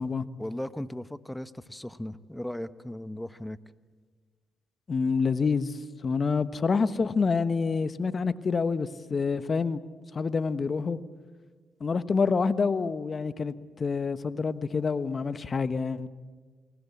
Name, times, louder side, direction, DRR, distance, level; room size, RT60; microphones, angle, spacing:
voice 1, 0.4-3.6, left 1 dB, 10° left, 14 dB, 1.1 m, -37 dB
voice 2, 4.9-9.8 10.1-11.0 11.8-16.1, left 5 dB, 45° left, 13 dB, 1.2 m, -27 dB
29.0 x 20.5 x 8.5 m, 1.4 s
supercardioid pair, 60°, 0 cm